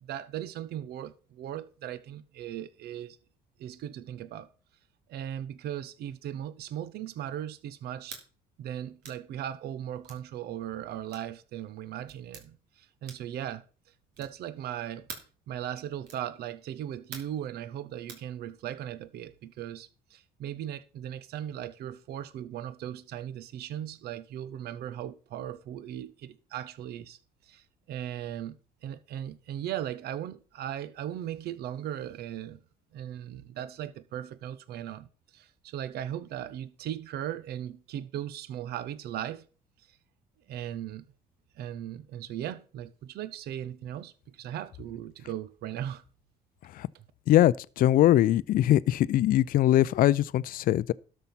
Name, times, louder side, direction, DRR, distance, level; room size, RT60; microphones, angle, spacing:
voice 1, 0.0-3.2 3.6-4.5 5.1-8.2 8.6-13.6 14.2-15.1 15.5-27.2 27.5-28.6 28.8-32.6 32.9-39.4 40.5-41.0 41.6-46.0 46.9-47.0, right 11 dB, 70° right, 0.9 m, -38 dB
sound 1, 8.0-8.3 9.0-9.2 10.0-10.2 11.1-11.3 12.1-12.5 13.0-13.4 14.1-14.4 15.1-15.4 16.0-16.3 17.1-17.4 18.1-18.3, right 6 dB, 85° right, 3.0 m, -45 dB
voice 2, 47.3-50.9, left 13 dB, 55° left, 0.4 m, -22 dB
12.5 x 5.5 x 6.0 m
cardioid pair, 110°, 17 cm